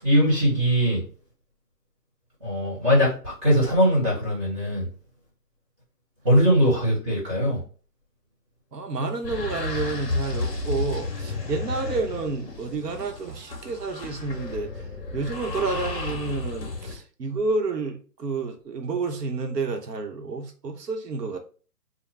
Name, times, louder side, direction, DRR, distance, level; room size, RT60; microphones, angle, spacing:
voice 1, 0.0-1.0 2.4-4.9 6.2-7.6, equal, 20° right, 1.6 m, -21 dB
voice 2, 8.7-14.7 15.1-21.4, right 3 dB, 75° right, 1.0 m, -30 dB
sound 1, 9.2-17.0, left 3 dB, 35° left, 0.9 m, -32 dB
4.9 x 2.2 x 3.3 m
hypercardioid pair, 175°, 48 cm